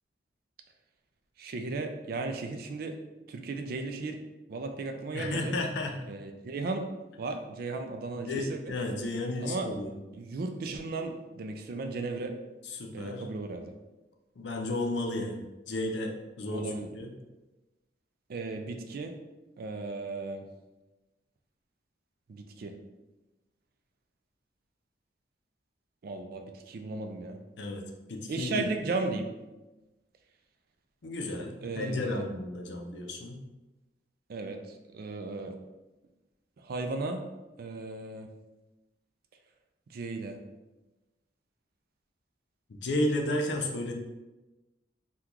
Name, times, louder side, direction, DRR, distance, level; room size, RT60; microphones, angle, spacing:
voice 1, 1.4-3.0 3.3-4.2 4.5-5.6 6.1-6.9 7.2-8.7 9.4-9.7 10.1-12.3 12.9-13.7 16.5-16.9 18.3-19.1 19.6-20.5 22.3-22.8 26.0-27.4 28.3-29.3 31.6-32.2 34.3-35.5 36.6-37.2 37.6-38.3 39.9-40.4, right 3 dB, 55° right, 6 dB, 0.4 m, -35 dB
voice 2, 5.1-5.9 8.3-9.9 12.6-13.2 14.4-17.1 27.6-27.8 28.1-28.6 31.0-33.4 42.7-43.9, left 1 dB, 70° left, 2 dB, 0.5 m, -33 dB
2.9 x 2.3 x 3.6 m, 1.1 s
head